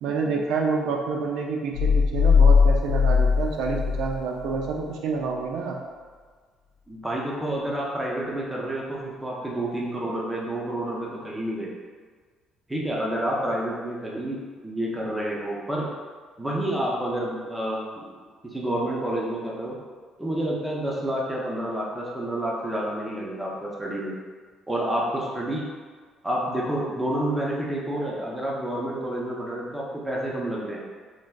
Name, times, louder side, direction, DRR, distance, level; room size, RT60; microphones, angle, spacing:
voice 1, 0.0-5.8, right 4 dB, 75° right, 1 dB, 0.4 m, -28 dB
sound 1, 1.7-4.7, left 5 dB, 65° left, 0.7 m, -19 dB
voice 2, 6.9-11.7 12.7-15.9 16.4-18.2 18.4-19.8 20.2-24.1 24.7-25.7 26.2-30.8, right 1 dB, 10° right, -4 dB, 0.5 m, -29 dB
3.2 x 2.5 x 2.2 m, 1.5 s
cardioid pair, 160°, 0 cm